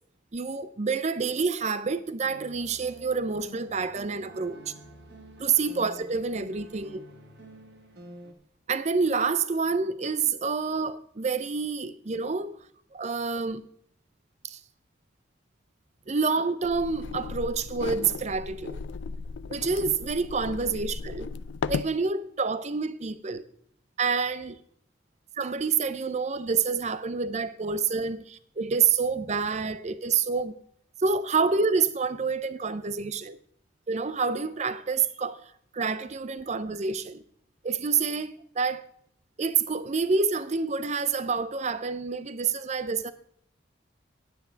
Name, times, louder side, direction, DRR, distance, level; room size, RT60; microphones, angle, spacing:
voice 1, 0.3-4.6 5.4-7.0 8.7-12.6 12.9-13.7 14.4-14.6 16.1-18.8 19.5-21.3 21.7-23.4 24.0-24.6 25.4-30.5 31.0-33.4 33.9-37.2 37.6-38.8 39.4-43.1, right 5 dB, 35° right, 0.5 m, -28 dB
sound 1, 2.2-8.3, right 1 dB, 60° right, 1.4 m, -48 dB
sound 2, 16.6-22.0, left 5 dB, 75° left, 0.4 m, -36 dB
10.0 x 9.3 x 4.5 m
head